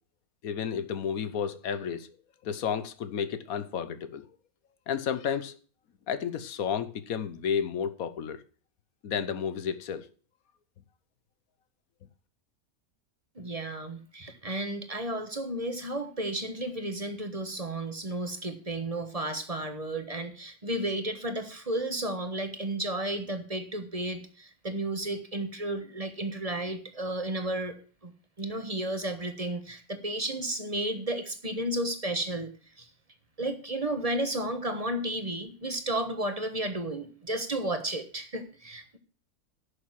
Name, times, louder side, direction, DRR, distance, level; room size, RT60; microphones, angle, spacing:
voice 1, 0.4-2.2 2.4-4.2 4.9-5.6 6.1-8.4 9.0-10.1, left 7 dB, 70° left, 1.3 m, -32 dB
voice 2, 13.3-27.7 28.0-28.1 28.4-32.5 32.8-32.9 33.4-39.0, right 1 dB, 25° right, 1.3 m, -33 dB
11.0 x 6.7 x 7.4 m
omnidirectional pair, 1.6 m